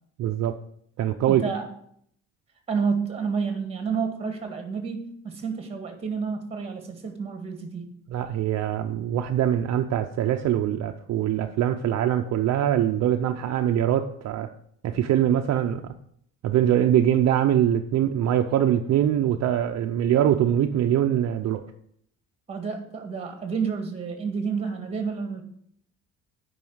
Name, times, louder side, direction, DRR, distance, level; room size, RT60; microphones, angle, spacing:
voice 1, 0.2-0.6 1.0-1.4 8.1-14.5 14.8-15.8 16.4-21.6, right 10 dB, 55° right, 5 dB, 0.6 m, -23 dB
voice 2, 1.3-1.7 2.7-7.9 22.5-25.4, right 5 dB, 20° right, 5 dB, 1.8 m, -30 dB
9.0 x 5.5 x 7.9 m, 0.67 s
cardioid pair, 170°, 32 cm